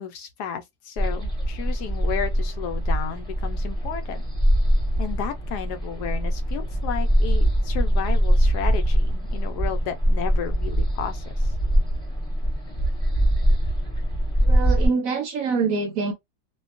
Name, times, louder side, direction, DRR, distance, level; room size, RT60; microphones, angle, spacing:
voice 1, 0.0-4.2 5.0-11.5, left 8 dB, 75° left, 1.1 m, -33 dB
sound 1, 1.0-14.9, equal, 5° left, 0.7 m, -23 dB
voice 2, 14.4-16.1, right 5 dB, 65° right, 0.9 m, -25 dB
2.7 x 2.2 x 2.4 m
omnidirectional pair, 1.8 m